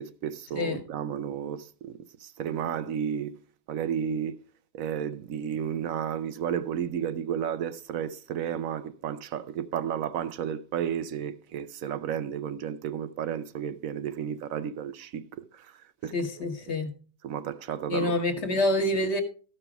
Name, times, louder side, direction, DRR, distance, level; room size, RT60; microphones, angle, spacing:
voice 1, 0.0-3.4 3.7-4.4 4.7-16.7 17.2-18.6, right 8 dB, 65° right, 0.9 m, -33 dB
voice 2, 16.1-16.9 17.9-19.2, left 1 dB, 40° left, 1.5 m, -27 dB
14.0 x 6.1 x 4.6 m
omnidirectional pair, 1.9 m